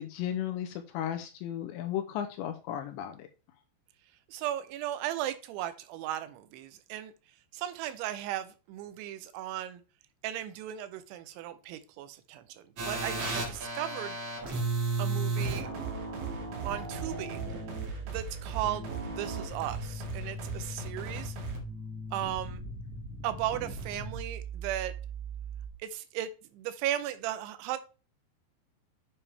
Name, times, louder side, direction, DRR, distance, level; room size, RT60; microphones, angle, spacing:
voice 1, 0.0-3.3, left 10 dB, 80° left, 6 dB, 2.7 m, -35 dB
voice 2, 4.3-7.1 7.5-9.8 10.2-14.2 15.0-15.7 16.6-17.4 18.1-21.4 22.1-22.6 23.2-24.9 25.8-27.8, right 12 dB, 80° right, 12 dB, 3.0 m, -36 dB
harmonic fun(half magnitude), 12.8-25.7, right 3 dB, 45° right, 2.3 m, -36 dB
sound 1, 15.4-21.6, right 4 dB, 60° right, 3.3 m, -40 dB
8.6 x 7.0 x 3.3 m, 0.33 s
omnidirectional pair, 5.6 m